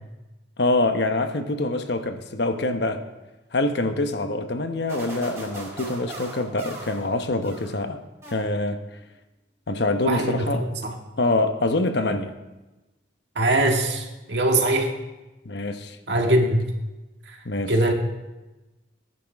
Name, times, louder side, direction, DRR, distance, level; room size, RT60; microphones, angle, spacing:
voice 1, 0.6-3.0 3.5-8.0 8.3-8.8 9.7-10.6 11.2-12.3 15.4-16.0 17.4-17.7, left 2 dB, 60° left, 7 dB, 1.0 m, -25 dB
sound 1, 4.9-7.8 8.2-8.9, right 1 dB, 15° right, 4.7 m, -39 dB
voice 2, 10.0-10.9 13.4-14.9 16.1-16.7 17.3-17.4 17.7-17.9, right 1 dB, 65° right, 1 dB, 1.9 m, -22 dB
22.0 x 10.5 x 3.5 m, 1.1 s
head